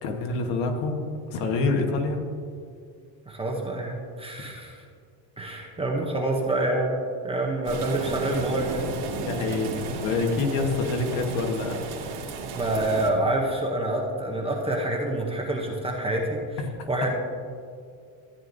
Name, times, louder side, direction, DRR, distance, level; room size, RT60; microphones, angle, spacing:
voice 1, 0.0-1.0 1.3-2.2 9.2-11.8 16.8-16.9, left 3 dB, 60° left, 3 dB, 1.4 m, -26 dB
voice 2, 3.3-4.8 5.4-7.0 7.2-8.8 12.5-16.6 16.9-17.1, right 1 dB, 10° right, -1 dB, 0.6 m, -27 dB
sound 1, 7.6-13.1, right 3 dB, 65° right, 1.9 m, -33 dB
14.0 x 8.8 x 2.6 m, 2.3 s
cardioid pair, 165°, 47 cm